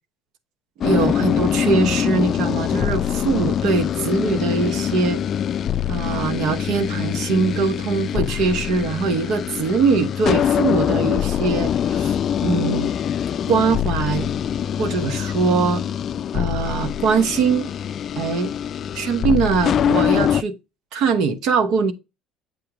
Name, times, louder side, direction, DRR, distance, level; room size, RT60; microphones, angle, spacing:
sound 1, 0.8-20.4, left 9 dB, 50° left, 0.3 m, -23 dB
voice 1, 0.8-5.2 5.9-13.0 13.5-14.3 14.8-15.8 16.3-17.7 18.2-18.5 19.0-20.6 20.9-21.9, right 5 dB, 70° right, 1.1 m, -22 dB
7.8 x 2.9 x 5.0 m
supercardioid pair, 100°, 0 cm